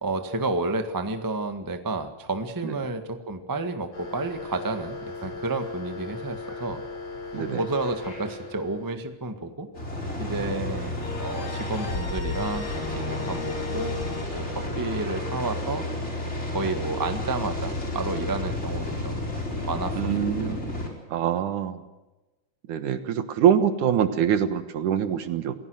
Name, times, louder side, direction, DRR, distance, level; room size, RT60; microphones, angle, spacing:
voice 1, 0.0-6.8 7.4-9.7 10.2-10.9 11.2-14.0 14.3-15.9 16.5-19.2 19.7-21.0, right 2 dB, 15° right, 7 dB, 0.6 m, -31 dB
sound 1, 3.9-8.9, left 2 dB, 85° left, 7.3 m, -38 dB
sound 2, 9.7-20.9, left 1 dB, 20° left, 4.6 m, -31 dB
sound 3, 11.0-14.2, left 4 dB, 60° left, 3.7 m, -36 dB
voice 2, 20.0-20.6 21.1-21.8 22.7-25.5, right 9 dB, 70° right, 10 dB, 2.8 m, -24 dB
27.5 x 17.0 x 6.4 m, 1.1 s
omnidirectional pair, 3.8 m